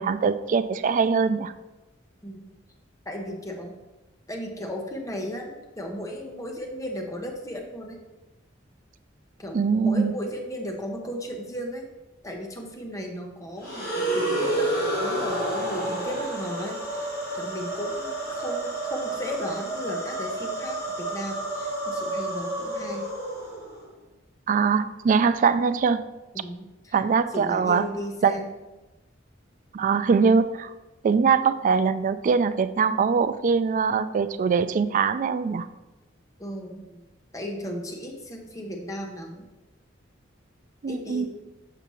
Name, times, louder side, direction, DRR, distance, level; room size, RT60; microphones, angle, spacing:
voice 1, 0.0-1.5 9.5-10.1 24.5-26.0 26.9-27.8 28.2-28.4 29.7-30.7 31.0-35.7 40.8-41.3, right 5 dB, 45° right, 12 dB, 0.3 m, -22 dB
voice 2, 3.1-3.7 4.3-8.0 9.4-11.9 12.2-14.7 15.0-17.1 17.3-23.1 26.3-26.9 27.3-28.5 36.4-37.0 37.3-39.4 40.9-41.3, equal, 15° left, 1 dB, 0.8 m, -35 dB
sound 1, 13.6-23.8, right 1 dB, 55° left, 1.9 m, -30 dB
6.8 x 5.9 x 3.0 m, 1.1 s
head